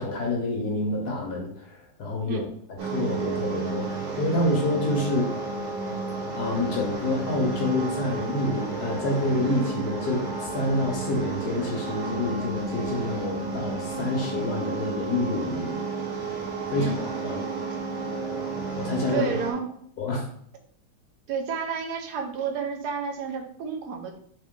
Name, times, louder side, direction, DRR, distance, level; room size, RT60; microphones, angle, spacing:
voice 1, 0.0-5.3 6.3-15.8 16.7-17.0 17.2-17.4 18.8-19.3 20.0-20.3, left 1 dB, 60° left, 0 dB, 1.2 m, -28 dB
sound 1, 2.8-19.5, right 4 dB, 80° right, 1.8 m, -32 dB
voice 2, 19.1-19.6 21.3-24.2, right 5 dB, 65° right, 3 dB, 1.1 m, -30 dB
3.7 x 3.6 x 3.6 m, 0.63 s
omnidirectional pair, 2.3 m